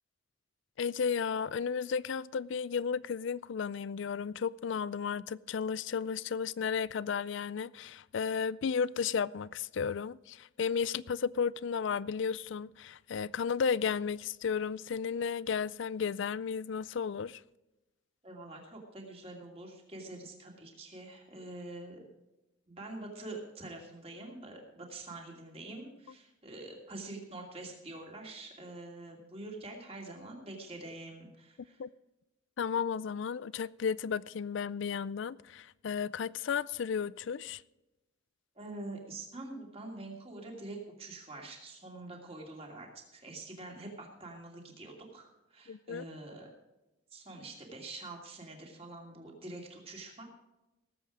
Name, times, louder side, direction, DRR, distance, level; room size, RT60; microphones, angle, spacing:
voice 1, 0.8-17.4 31.8-31.9 32.6-37.6 45.7-46.0, left 6 dB, 65° left, 0.4 m, -33 dB
voice 2, 18.2-22.0 22.7-31.8 38.6-46.5 47.1-50.2, right 2 dB, 30° right, 2.6 m, -45 dB
18.5 x 8.0 x 4.9 m
head